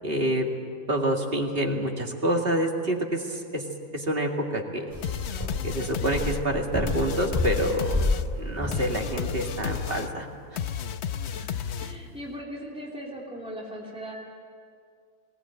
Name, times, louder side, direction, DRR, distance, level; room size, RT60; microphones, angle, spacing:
voice 1, 0.0-0.5 0.9-3.6 3.9-4.9 5.6-8.0 8.4-10.3, right 1 dB, 50° right, 1 dB, 2.5 m, -27 dB
sound 1, 4.9-9.9, left 1 dB, 10° left, 3.7 m, -31 dB
sound 2, 5.0-12.2, left 8 dB, 65° left, 1.0 m, -33 dB
voice 2, 11.3-14.1, equal, 5° right, -3 dB, 3.1 m, -39 dB
20.5 x 18.5 x 9.0 m, 2.2 s
omnidirectional pair, 1.3 m